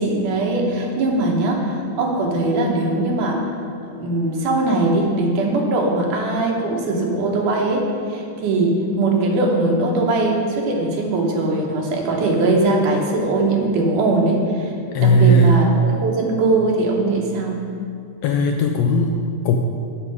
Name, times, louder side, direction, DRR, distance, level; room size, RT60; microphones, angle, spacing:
voice 1, 0.0-3.5 3.8-14.7 15.0-17.7, right 2 dB, 90° right, 0 dB, 2.6 m, -20 dB
voice 2, 14.9-15.7 18.2-19.6, equal, 85° left, 3 dB, 1.5 m, -17 dB
8.2 x 6.7 x 5.2 m, 2.4 s
omnidirectional pair, 3.5 m